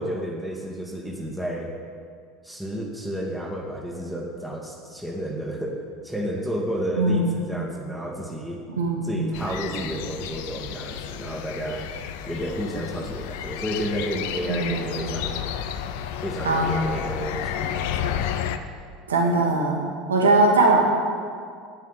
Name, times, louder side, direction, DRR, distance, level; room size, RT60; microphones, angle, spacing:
voice 1, 0.0-1.7 2.4-8.6 9.0-11.9 12.3-15.4 16.2-18.2, equal, ahead, -1 dB, 1.9 m, -31 dB
voice 2, 7.0-7.4 8.8-9.2 14.5-14.9 16.4-16.8 19.1-20.8, right 2 dB, 75° right, 0 dB, 1.9 m, -21 dB
sound 1, 9.3-18.6, left 9 dB, 60° left, 0.7 m, -32 dB
9.7 x 9.5 x 8.8 m, 2.2 s
figure-of-eight pair, 70°, 0 cm